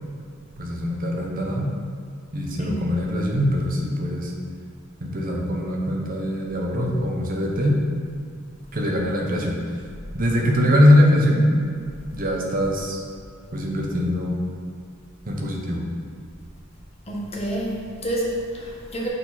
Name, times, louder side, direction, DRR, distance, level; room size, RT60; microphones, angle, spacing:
voice 1, 0.6-1.7 2.3-4.3 5.0-7.8 8.7-9.7 10.1-11.5 12.1-13.0 13.5-14.4 15.3-15.9, left 1 dB, 45° right, -1 dB, 1.0 m, -22 dB
voice 2, 17.1-19.1, right 1 dB, 30° left, -3 dB, 1.2 m, -28 dB
6.4 x 4.7 x 4.1 m, 2.2 s
head